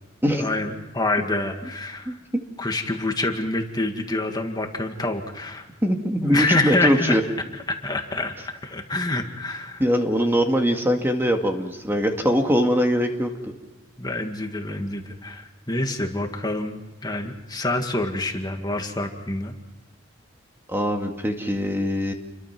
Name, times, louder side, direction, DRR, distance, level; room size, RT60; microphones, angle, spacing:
voice 1, 0.3-2.2 2.6-5.7 6.2-7.2 7.7-9.8 14.0-19.5, left 2 dB, 20° left, 4 dB, 2.0 m, -27 dB
voice 2, 2.1-2.4 5.8-7.2 9.8-13.5 20.7-22.1, equal, 10° right, 3 dB, 2.1 m, -22 dB
29.5 x 23.0 x 6.1 m, 1.2 s
head